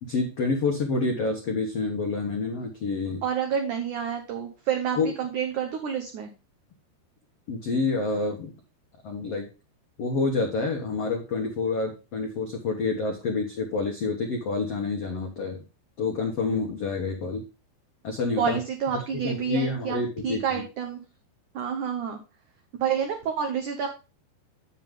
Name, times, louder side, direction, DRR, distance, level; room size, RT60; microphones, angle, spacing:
voice 1, 0.0-3.2 5.0-5.1 7.5-8.5 9.0-9.5 10.0-15.6 16.0-17.4 18.0-18.6 18.9-20.6, left 3 dB, 85° left, 2 dB, 1.3 m, -28 dB
voice 2, 3.2-6.3 18.4-21.0 21.5-22.2 22.8-23.9, right 8 dB, 90° right, 4 dB, 1.7 m, -29 dB
9.1 x 7.3 x 3.6 m, 0.32 s
omnidirectional pair, 5.0 m